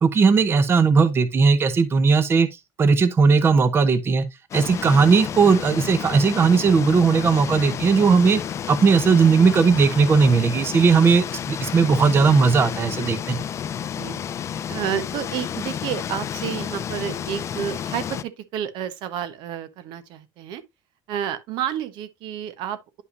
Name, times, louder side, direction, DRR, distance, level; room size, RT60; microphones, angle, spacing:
voice 1, 0.0-2.5 2.8-4.3 4.5-8.4 8.7-13.4, right 5 dB, 30° right, 0.7 m, -17 dB
sound 1, 4.5-18.2, left 9 dB, 35° left, 0.4 m, -31 dB
voice 2, 13.8-14.2 14.7-20.6 21.1-23.0, right 9 dB, 80° right, 0.9 m, -30 dB
9.5 x 5.5 x 2.5 m
cardioid pair, 140°, 8 cm